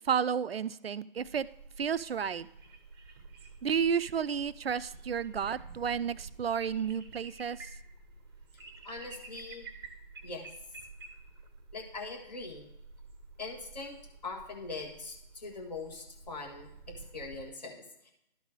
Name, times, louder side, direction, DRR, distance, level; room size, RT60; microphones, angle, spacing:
voice 1, 0.1-1.5 1.8-2.5 3.6-7.7, right 7 dB, 90° right, 14 dB, 0.5 m, -31 dB
sound 1, 1.2-17.5, right 3 dB, 25° right, 0.7 m, -50 dB
voice 2, 8.8-9.7 10.2-10.5 11.7-12.7 13.4-14.0 14.2-18.1, left 3 dB, 45° left, 2 dB, 1.7 m, -42 dB
12.0 x 4.1 x 4.8 m, 0.81 s
figure-of-eight pair, 155°, 29 cm